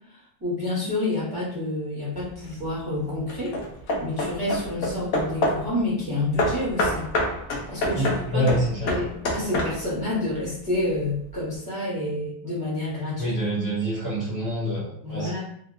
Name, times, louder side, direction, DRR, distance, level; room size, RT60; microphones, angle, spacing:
voice 1, 0.1-3.6 4.0-7.1 7.7-13.5 15.0-15.4, left 2 dB, 20° right, -9 dB, 0.6 m, -29 dB
Hammer / Wood, 2.2-2.7 3.3-5.7 6.4-10.0, left 1 dB, 75° left, 1.0 m, -27 dB
voice 2, 7.9-8.9 13.2-15.4, right 1 dB, 30° left, -11 dB, 1.0 m, -26 dB
2.7 x 2.1 x 2.4 m, 0.66 s
omnidirectional pair, 1.6 m